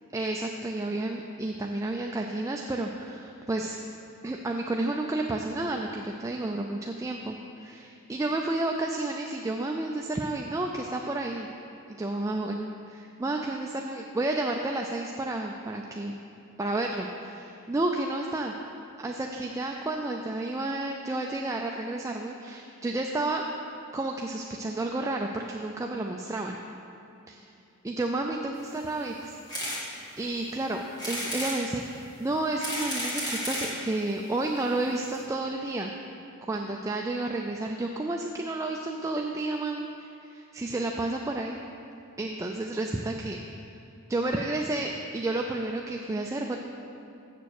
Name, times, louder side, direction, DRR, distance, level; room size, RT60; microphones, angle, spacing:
voice 1, 0.1-3.8 4.2-11.5 12.0-16.2 16.6-18.5 19.0-23.4 23.9-26.6 27.3-27.5 27.8-29.3 30.2-35.9 36.5-41.6 42.2-43.4 44.1-46.6, right 2 dB, 15° right, 1 dB, 0.3 m, -31 dB
sound 1, 29.5-29.8 30.3-30.4 31.0-31.6 32.3-33.8 34.6-34.7 34.8-34.9 35.1-35.2, equal, 20° left, 2.1 m, -32 dB
7.8 x 6.7 x 6.5 m, 2.7 s
head